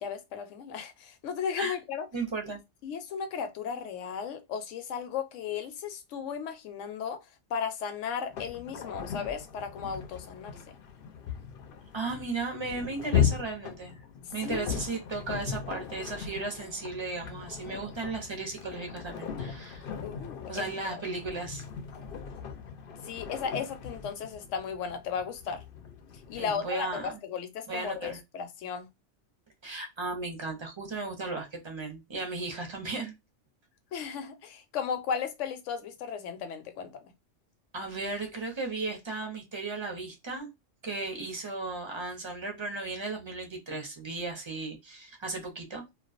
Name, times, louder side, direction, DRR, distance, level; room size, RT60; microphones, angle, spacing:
voice 1, 0.0-2.1 2.8-10.8 14.4-14.7 20.0-21.0 23.0-25.6 26.3-28.9 33.9-37.1, left 7 dB, 80° left, 0.9 m, -35 dB
voice 2, 2.1-2.6 11.9-14.0 14.3-19.9 20.5-21.6 26.3-27.1 27.7-28.2 29.6-33.1 37.7-40.5 40.8-45.8, right 3 dB, 30° right, 0.5 m, -35 dB
sound 1, 8.3-26.5, left 8 dB, 60° left, 0.6 m, -37 dB
2.3 x 2.2 x 2.4 m
omnidirectional pair, 1.2 m